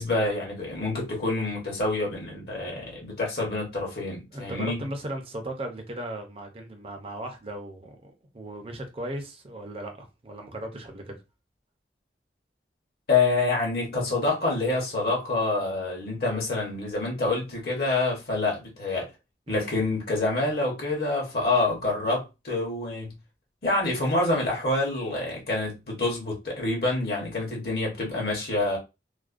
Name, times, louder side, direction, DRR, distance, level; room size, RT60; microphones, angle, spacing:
voice 1, 0.0-4.8 13.1-19.1 19.5-23.1 23.6-28.8, left 2 dB, 60° left, 0.9 m, -27 dB
voice 2, 2.5-3.0 4.3-11.2 19.5-19.7, right 1 dB, 30° right, 0.5 m, -37 dB
2.4 x 2.1 x 2.4 m
head